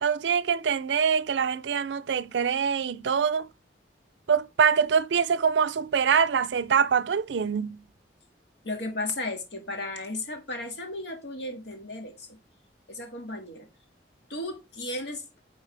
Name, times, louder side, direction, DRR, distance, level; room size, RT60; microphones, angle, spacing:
voice 1, 0.0-3.5 4.3-7.8, right 6 dB, 80° right, 0.4 m, -24 dB
voice 2, 8.6-12.4 12.9-13.7 14.3-15.3, left 2 dB, 70° left, 1.9 m, -35 dB
9.4 x 3.9 x 3.3 m
head